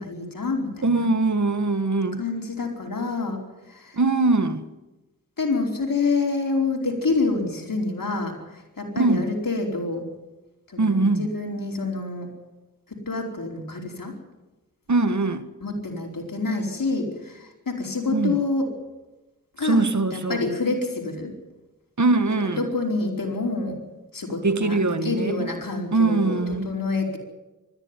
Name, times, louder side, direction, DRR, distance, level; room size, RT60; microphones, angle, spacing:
voice 1, 0.0-1.1 2.2-3.4 3.7-4.0 5.4-10.0 10.7-12.3 12.9-14.1 15.6-18.7 19.6-19.8 20.1-21.3 22.4-23.8 24.1-27.2, left 3 dB, 80° left, 4.7 m, -27 dB
voice 2, 0.8-2.2 3.9-4.6 9.0-9.3 10.8-11.3 14.9-15.5 18.1-18.3 19.6-20.5 22.0-22.7 24.4-25.5 25.9-26.7, right 3 dB, 60° right, 1.6 m, -22 dB
20.5 x 14.5 x 9.9 m
cardioid pair, 45°, 33 cm